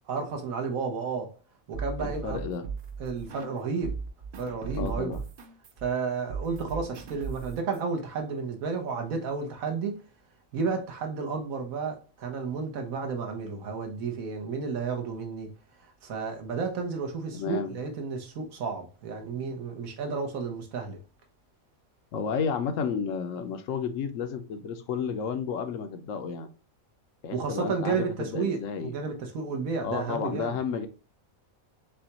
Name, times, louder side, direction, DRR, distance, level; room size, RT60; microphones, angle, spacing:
voice 1, 0.1-1.3 1.7-2.4 3.0-3.9 4.4-5.2 5.8-10.0 10.5-15.5 16.0-21.0 27.3-30.6, right 5 dB, 80° right, 1.3 m, -32 dB
sound 1, 1.7-3.6 3.8-7.8, right 5 dB, 55° right, 0.7 m, -37 dB
voice 2, 2.0-2.6 4.7-5.2 17.3-17.8 22.1-26.5 27.2-28.9 29.8-30.9, left 6 dB, 70° left, 1.0 m, -32 dB
6.7 x 2.2 x 2.8 m
omnidirectional pair, 1.4 m